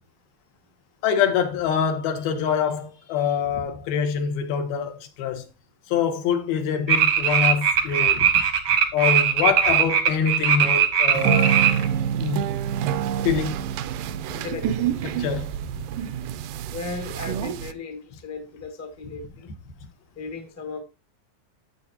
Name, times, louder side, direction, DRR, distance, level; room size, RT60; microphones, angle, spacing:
voice 1, 1.0-5.5 5.9-8.4 8.9-11.6 12.2-12.5 13.2-13.7 15.0-15.6, left 7 dB, 85° left, 3.2 m, -25 dB
sound 1, 6.9-11.9, right 8 dB, 60° right, 1.1 m, -20 dB
sound 2, 11.1-17.7, right 9 dB, 80° right, 2.0 m, -27 dB
voice 2, 14.3-15.1 16.7-19.5 20.1-20.8, left 4 dB, 20° left, 0.4 m, -36 dB
11.5 x 8.0 x 2.8 m
omnidirectional pair, 4.2 m